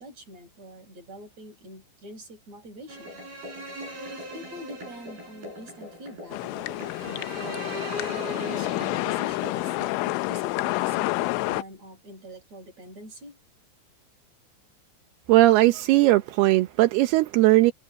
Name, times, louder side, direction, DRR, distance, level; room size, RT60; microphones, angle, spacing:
voice 1, 0.0-3.2 4.1-7.7 8.1-9.7 10.3-13.4, equal, 35° right, 8.9 m, -44 dB
sound 1, 2.9-10.1, right 1 dB, 50° right, 9.6 m, -39 dB
sound 2, 6.3-11.6, left 21 dB, 85° left, 3.1 m, -29 dB
voice 2, 15.3-17.7, right 17 dB, 75° right, 2.5 m, -18 dB
omnidirectional pair, 5.5 m